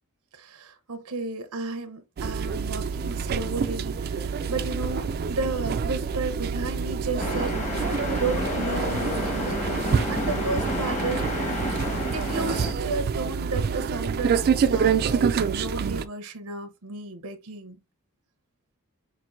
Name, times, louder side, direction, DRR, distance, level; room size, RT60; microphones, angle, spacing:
voice 1, 0.3-7.9 8.1-9.7 10.1-11.5 12.1-17.8, right 3 dB, 90° right, 0.8 m, -33 dB
sound 1, 2.2-16.1, right 6 dB, 45° right, 0.3 m, -27 dB
sound 2, 7.2-12.7, left 1 dB, 35° left, 1.2 m, -30 dB
5.9 x 2.6 x 2.5 m
head